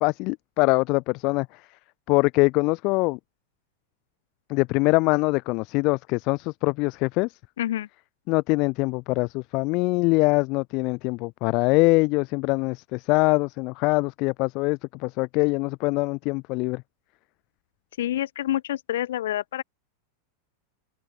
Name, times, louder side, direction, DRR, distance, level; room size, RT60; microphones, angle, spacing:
voice 1, 0.0-1.5 2.1-3.2 4.5-7.3 8.3-16.8, left 26 dB, 40° left, 0.3 m, -23 dB
voice 2, 7.6-7.9 18.0-19.6, left 12 dB, 60° left, 1.2 m, -27 dB
figure-of-eight pair, 90°, 0 cm